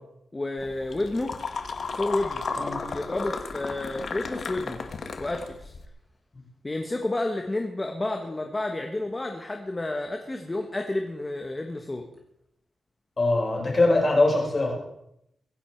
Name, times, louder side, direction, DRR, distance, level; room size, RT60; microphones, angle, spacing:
voice 1, 0.3-1.3 1.9-2.4 2.9-4.8 5.2-5.7 6.6-12.0, left 2 dB, 20° left, 3 dB, 1.4 m, -30 dB
sound 1, 0.6-5.9, left 4 dB, 55° left, 1.6 m, -34 dB
voice 2, 13.2-14.7, left 2 dB, 35° left, -1 dB, 5.4 m, -22 dB
22.5 x 11.0 x 4.6 m, 0.79 s
wide cardioid pair, 145°, 0 cm